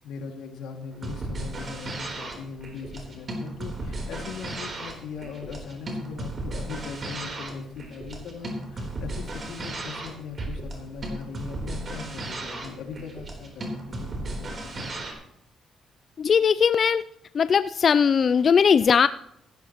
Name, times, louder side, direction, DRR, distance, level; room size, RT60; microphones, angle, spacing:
voice 1, 0.0-14.9, left 5 dB, 90° left, 2 dB, 2.3 m, -40 dB
sound 1, 0.9-15.1, right 1 dB, 40° right, 3.7 m, -35 dB
voice 2, 16.2-17.0 17.3-19.1, left 6 dB, 50° left, 14 dB, 0.3 m, -19 dB
15.0 x 12.5 x 3.0 m, 0.76 s
cardioid pair, 90°, 0 cm